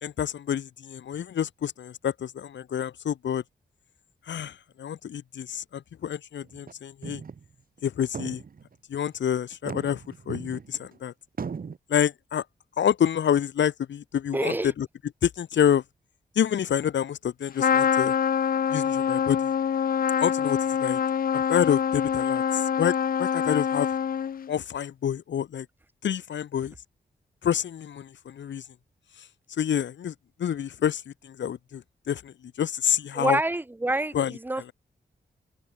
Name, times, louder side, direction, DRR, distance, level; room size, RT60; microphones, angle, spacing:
voice 1, 0.0-3.4 4.3-7.2 7.8-8.4 8.9-11.1 11.9-12.4 12.8-14.9 15.2-15.8 16.3-18.1 18.7-19.5 20.2-21.0 21.3-23.9 24.5-25.7 26.0-26.7 27.4-28.6 29.6-30.1 30.4-33.4 34.1-34.3, left 9 dB, 80° left, 1.4 m, -28 dB
sound 1, 6.4-6.7 7.0-7.5 7.8-7.9 8.1-9.0 9.5-11.0 11.4-11.8, right 5 dB, 50° right, 1.3 m, -37 dB
voice 2, 14.3-14.7 33.1-34.6, right 2 dB, 10° right, 0.6 m, -27 dB
Trumpet, 17.6-24.5, left 8 dB, 55° left, 0.5 m, -25 dB
open air
cardioid pair, 55°, 18 cm